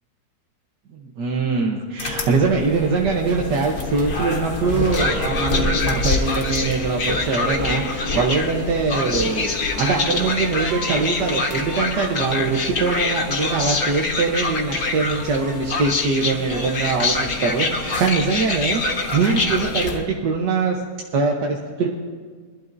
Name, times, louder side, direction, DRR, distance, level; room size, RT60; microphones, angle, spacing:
voice 1, 0.9-20.8 21.1-21.9, right 4 dB, 90° right, 0 dB, 1.7 m, -22 dB
sound 1, 2.0-20.0, left 3 dB, 55° left, 1.6 m, -25 dB
23.0 x 12.0 x 2.7 m, 1.5 s
omnidirectional pair, 1.7 m